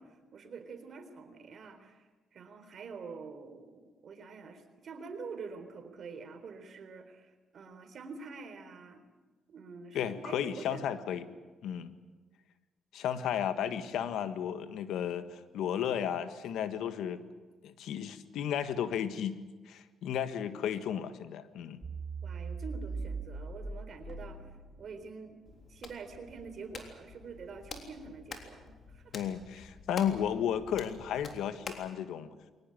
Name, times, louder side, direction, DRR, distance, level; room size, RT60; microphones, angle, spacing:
voice 1, 0.0-9.0 9.5-11.3 22.2-24.5 24.8-25.4 25.7-29.2, right 4 dB, 55° right, 8 dB, 3.8 m, -46 dB
voice 2, 9.9-11.2 11.6-11.9 12.9-17.2 17.6-19.4 19.6-21.8 29.1-32.3, left 9 dB, 80° left, 11 dB, 1.5 m, -33 dB
sound 1, 21.8-25.0, right 4 dB, 30° right, 5.1 m, -40 dB
Hands, 25.5-31.9, left 4 dB, 45° left, 3.4 m, -48 dB
22.5 x 19.0 x 9.1 m, 1.3 s
cardioid pair, 90°, 0 cm